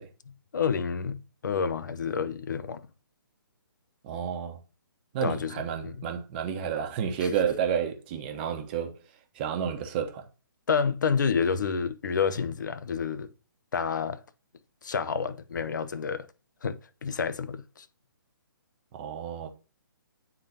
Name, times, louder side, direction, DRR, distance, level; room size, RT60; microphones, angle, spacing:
voice 1, 0.3-2.9 5.2-6.0 7.2-7.3 10.7-13.3 13.7-14.2 14.8-16.3 16.6-17.9, left 6 dB, 55° left, 0.5 m, -29 dB
voice 2, 4.0-4.6 5.1-8.9 9.4-10.2 18.9-19.5, right 8 dB, 25° right, 0.7 m, -30 dB
9.2 x 3.8 x 2.7 m
figure-of-eight pair, 135°, 12 cm